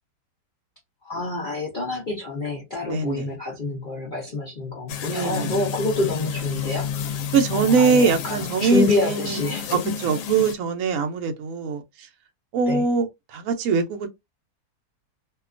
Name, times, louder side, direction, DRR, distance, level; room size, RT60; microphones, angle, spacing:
voice 1, 1.0-7.1 7.5-9.7 12.7-12.8, left 2 dB, 55° left, 0.5 m, -27 dB
voice 2, 2.9-3.3 5.1-5.5 7.3-9.4 9.7-12.1 12.5-14.1, right 5 dB, 65° right, 0.9 m, -22 dB
sound 1, 4.9-10.5, left 7 dB, 75° left, 1.1 m, -30 dB
2.8 x 2.2 x 2.4 m
omnidirectional pair, 1.8 m